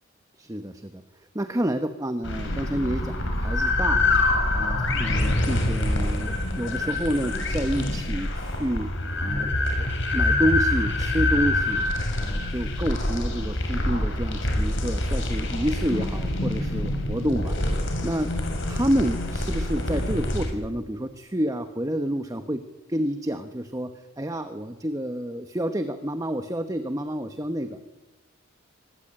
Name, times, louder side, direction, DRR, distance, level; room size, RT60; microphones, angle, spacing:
voice 1, 0.4-1.0 1.3-4.1 4.5-8.9 9.2-9.5 9.8-9.9 10.1-11.8 12.2-18.3 18.7-22.6 22.9-23.9 24.2-27.8, equal, 15° right, 8 dB, 1.1 m, -29 dB
sound 1, 2.2-20.5, left 2 dB, 60° left, 6.6 m, -25 dB
25.5 x 21.0 x 8.9 m, 1.1 s
head